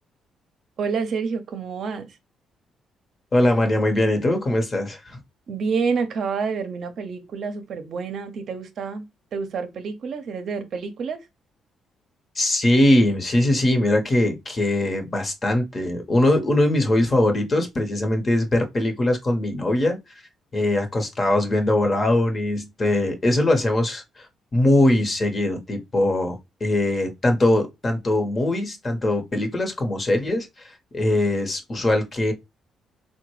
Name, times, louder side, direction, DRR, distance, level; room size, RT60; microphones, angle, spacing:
voice 1, 0.8-2.1 5.5-9.0 9.3-11.2, right 5 dB, 60° right, 0.5 m, -28 dB
voice 2, 3.3-5.2 12.3-20.0 20.5-24.3 24.5-32.3, left 1 dB, 35° left, 0.9 m, -21 dB
3.6 x 2.1 x 3.0 m
cardioid pair, 90°, 0 cm